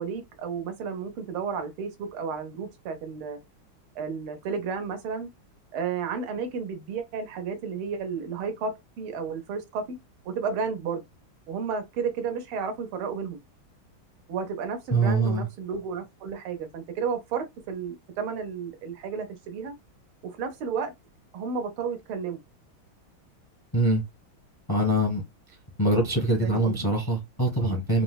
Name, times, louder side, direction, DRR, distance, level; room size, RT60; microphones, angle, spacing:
voice 1, 0.0-3.4 3.9-5.3 5.7-10.0 10.2-11.0 11.5-13.4 14.3-19.7 20.2-20.9 21.3-22.4 26.4-26.9 27.6-27.8, right 6 dB, 85° right, 1.7 m, -32 dB
voice 2, 14.9-15.5 23.7-24.0 24.7-25.2 25.8-28.0, right 1 dB, 20° left, 0.5 m, -23 dB
4.2 x 2.0 x 2.2 m
omnidirectional pair, 2.3 m